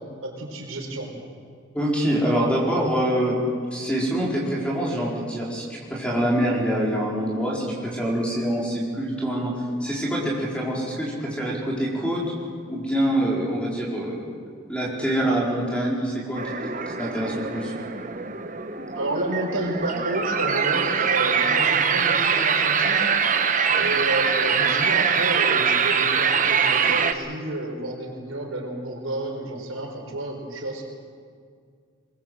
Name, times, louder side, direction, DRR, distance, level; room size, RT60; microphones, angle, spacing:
voice 1, 0.2-1.1 18.9-23.0 23.7-30.8, right 1 dB, 85° right, 1 dB, 4.8 m, -30 dB
voice 2, 1.7-3.4 3.7-9.5 9.8-12.2 12.7-14.2 14.7-16.4 17.0-17.7, right 1 dB, 5° left, -4 dB, 4.8 m, -25 dB
sound 1, 16.4-27.1, right 6 dB, 40° right, 1.1 m, -23 dB
22.0 x 22.0 x 7.9 m, 2.1 s
head